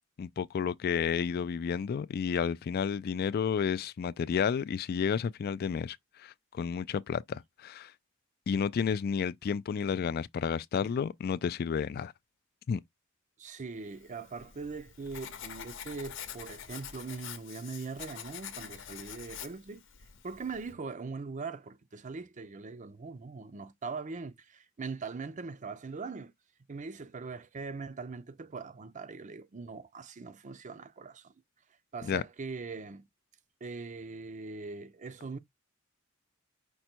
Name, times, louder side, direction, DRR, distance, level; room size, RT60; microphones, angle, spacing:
voice 1, 0.2-7.9 8.5-12.1 12.7-12.8 32.0-32.2, left 6 dB, 50° left, 0.3 m, -31 dB
voice 2, 13.4-19.8 20.2-26.3 26.7-31.3 31.9-33.1 33.6-35.4, right 4 dB, 35° right, 0.5 m, -41 dB
Writing, 14.0-20.7, left 9 dB, 65° left, 0.8 m, -46 dB
5.3 x 2.2 x 4.4 m
head